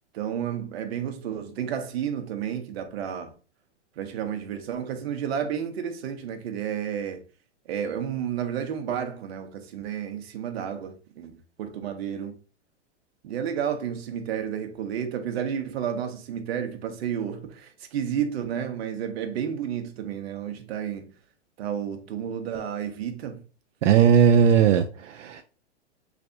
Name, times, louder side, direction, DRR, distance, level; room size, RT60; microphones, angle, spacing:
voice 1, 0.1-3.3 4.0-7.2 7.7-12.4 13.2-21.1 21.6-23.4, right 8 dB, 55° right, 0.8 m, -31 dB
voice 2, 23.8-25.4, right 8 dB, 85° right, 0.5 m, -18 dB
3.4 x 3.3 x 2.6 m
hypercardioid pair, 140°, 36 cm